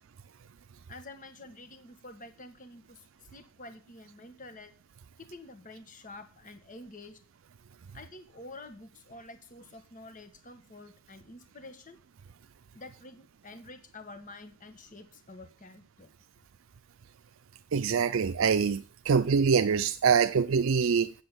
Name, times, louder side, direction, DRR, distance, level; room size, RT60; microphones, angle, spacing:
voice 1, 0.9-4.7 5.2-7.2 7.9-12.0 12.7-16.1, left 2 dB, 40° left, 1.5 m, -48 dB
voice 2, 17.7-21.1, right 6 dB, 75° right, 0.5 m, -24 dB
8.2 x 7.6 x 8.1 m
head